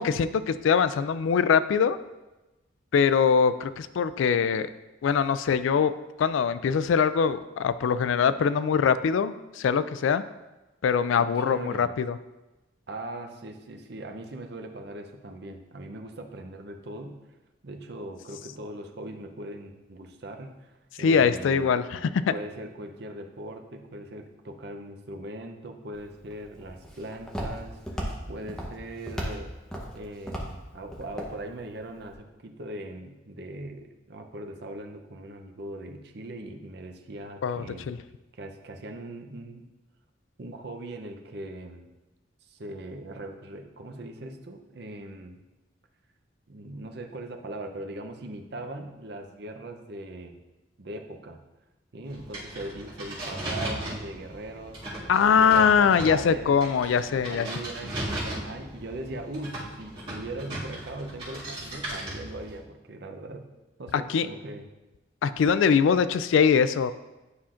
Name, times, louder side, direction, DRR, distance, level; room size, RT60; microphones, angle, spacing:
voice 1, 0.0-2.0 2.9-4.7 5.0-5.9 6.2-10.2 10.8-12.2 21.0-21.8 37.4-38.0 55.1-57.5 64.1-64.3 65.2-66.9, left 6 dB, 85° left, 13 dB, 0.3 m, -22 dB
voice 2, 11.2-11.9 12.9-17.2 17.6-21.7 22.3-29.5 29.9-37.9 38.3-39.7 40.4-41.9 42.4-45.4 46.5-50.4 50.8-51.4 51.9-56.5 57.1-63.4 63.8-64.7, right 1 dB, 60° right, 5 dB, 0.6 m, -40 dB
Walk footsteps, 25.9-32.1, equal, 5° left, 0.9 m, -37 dB
sound 1, 52.0-62.6, right 1 dB, 30° right, 2.1 m, -37 dB
9.6 x 5.7 x 2.5 m, 1.1 s
head